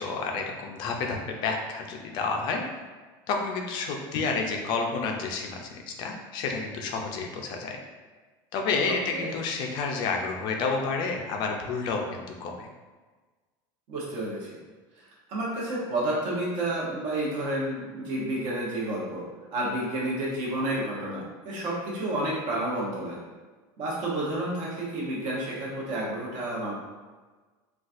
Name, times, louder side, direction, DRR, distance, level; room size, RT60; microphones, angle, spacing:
voice 1, 0.0-2.6 3.3-7.8 8.5-12.7, left 4 dB, 40° left, 2 dB, 0.4 m, -30 dB
voice 2, 8.9-9.3 13.9-14.6 15.0-19.2 19.5-23.2 23.8-26.7, right 1 dB, 45° right, -5 dB, 0.9 m, -30 dB
3.9 x 2.3 x 2.5 m, 1.3 s
cardioid pair, 170°, 11 cm